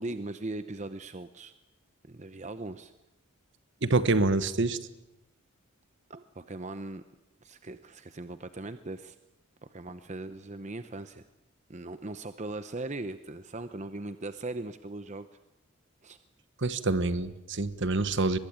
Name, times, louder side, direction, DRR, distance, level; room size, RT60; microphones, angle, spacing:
voice 1, 0.0-1.5 2.1-2.9 6.1-7.0 7.4-9.2 9.6-11.3 11.7-15.3 16.0-16.2, right 2 dB, 30° right, 11 dB, 0.8 m, -39 dB
voice 2, 3.8-4.8 16.6-18.4, right 2 dB, 55° right, 13 dB, 1.3 m, -26 dB
23.5 x 20.5 x 8.9 m, 0.95 s
head